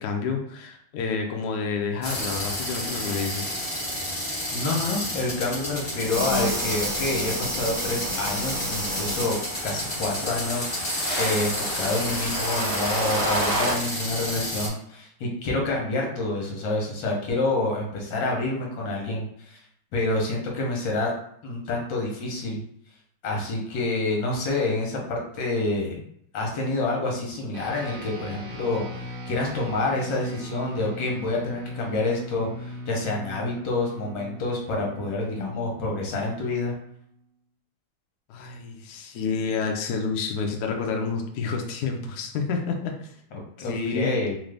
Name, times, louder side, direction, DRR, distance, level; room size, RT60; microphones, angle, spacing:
voice 1, 0.0-3.6 38.3-43.1 43.6-44.1, left 5 dB, 85° left, 3 dB, 0.8 m, -29 dB
sound 1, 2.0-14.7, left 1 dB, 30° left, 0.6 m, -31 dB
voice 2, 4.5-9.4 9.6-19.6 19.9-21.1 21.4-22.6 23.2-26.0 26.3-36.7 43.3-44.4, left 2 dB, 65° left, -1 dB, 1.5 m, -28 dB
sound 2, 5.9-9.3 10.4-13.7, equal, 50° right, 0.5 m, -29 dB
sound 3, 27.5-37.2, equal, 85° right, 1.6 m, -39 dB
3.7 x 2.6 x 3.3 m, 0.67 s
omnidirectional pair, 2.3 m